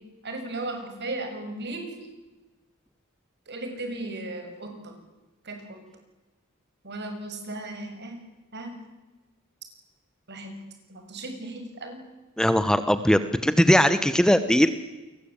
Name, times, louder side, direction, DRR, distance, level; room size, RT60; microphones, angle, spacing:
voice 1, 0.2-2.0 3.5-4.9 5.4-5.8 6.8-8.2 8.5-8.8 10.3-10.6 10.9-12.0, right 2 dB, 50° right, 5 dB, 6.9 m, -36 dB
voice 2, 12.4-14.7, equal, 5° left, 11 dB, 1.0 m, -20 dB
29.5 x 22.5 x 8.8 m, 1.1 s
head